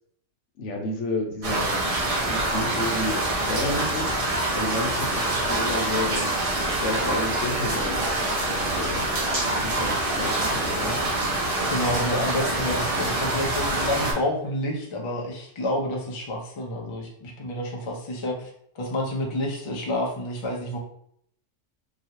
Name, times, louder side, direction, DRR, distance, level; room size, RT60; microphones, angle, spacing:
voice 1, 0.6-6.5 6.8-9.1 9.6-11.0, left 2 dB, 65° left, 1 dB, 1.0 m, -31 dB
sound 1, 1.4-14.1, right 2 dB, 40° right, 0.5 m, -25 dB
voice 2, 11.7-18.5 18.7-20.8, left 1 dB, 50° left, -1 dB, 0.3 m, -29 dB
3.0 x 2.3 x 2.8 m, 0.67 s
omnidirectional pair, 1.4 m